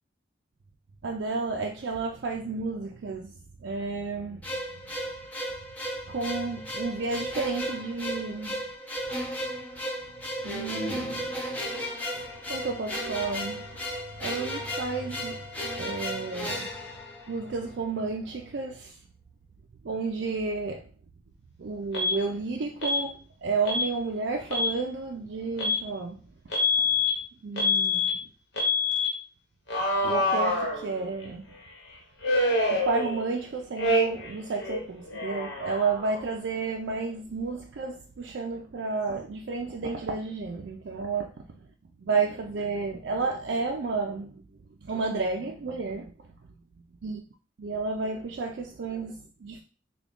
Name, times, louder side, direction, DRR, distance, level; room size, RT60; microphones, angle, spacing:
voice 1, 1.0-4.5 6.1-8.6 10.4-11.7 12.1-13.7 14.2-16.7 17.3-19.0 19.8-20.9 21.6-26.2 27.4-28.2 30.0-31.5 32.7-41.7 42.0-46.4 47.0-47.3 47.6-49.6, right 4 dB, 70° right, 0.4 m, -32 dB
sound 1, 4.4-17.7, equal, 10° left, 0.5 m, -35 dB
Alarm, 21.9-22.2 22.8-23.0 23.7-23.9 24.4-24.7 25.6-25.8 26.5-27.1 27.6-28.1 28.6-29.1 29.7-31.2 32.2-33.4 33.8-34.3 34.6-36.3, left 2 dB, 70° left, 1.0 m, -26 dB
3.5 x 2.2 x 3.5 m
head